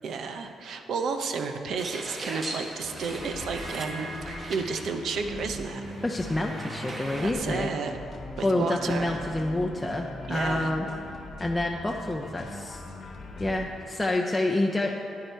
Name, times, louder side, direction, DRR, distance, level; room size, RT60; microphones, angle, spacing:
voice 1, 0.0-5.8 7.2-8.0 8.4-9.1 10.3-10.7, right 5 dB, 65° right, 6 dB, 0.8 m, -32 dB
sound 1, 1.8-7.3, right 2 dB, 40° right, 1.4 m, -39 dB
sound 2, 2.8-13.7, left 1 dB, 55° left, 1.1 m, -41 dB
voice 2, 6.0-7.7 8.4-10.9 11.4-12.8 13.4-14.9, left 1 dB, 10° left, 0 dB, 0.6 m, -28 dB
9.8 x 9.6 x 4.5 m, 2.6 s
cardioid pair, 90°, 0 cm